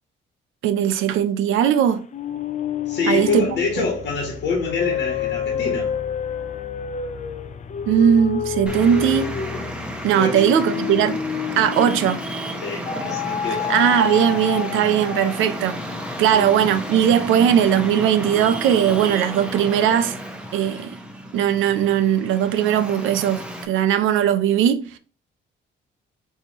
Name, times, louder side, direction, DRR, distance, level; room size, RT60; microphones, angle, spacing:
voice 1, 0.6-2.0 3.1-3.5 3.8-3.9 7.9-9.3 10.0-11.2 11.6-12.2 13.7-15.8 16.2-20.2 20.5-21.0 21.3-25.0, right 9 dB, 85° right, 0.5 m, -19 dB
sound 1, 2.1-12.3 12.9-15.6, left 8 dB, 40° left, 0.4 m, -28 dB
voice 2, 2.9-5.9 10.2-10.5 12.6-13.7 16.3-16.5, left 4 dB, 65° left, 1.4 m, -26 dB
Traffic noise roadway noise, 8.7-23.7, equal, 5° right, 0.7 m, -32 dB
4.5 x 2.7 x 2.8 m
cardioid pair, 90°, 20 cm